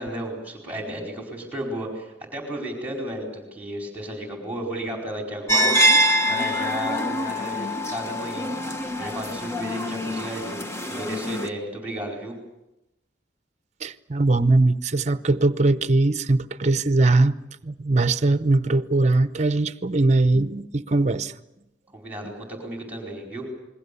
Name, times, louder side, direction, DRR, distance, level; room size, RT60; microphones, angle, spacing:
voice 1, 0.0-10.6 10.9-12.4 21.9-23.5, right 1 dB, 10° right, 4.6 m, -34 dB
sound 1, 5.5-11.5, equal, 15° left, 1.2 m, -24 dB
voice 2, 13.8-17.4 17.6-21.3, right 2 dB, 40° right, 0.8 m, -21 dB
28.0 x 21.5 x 6.9 m
head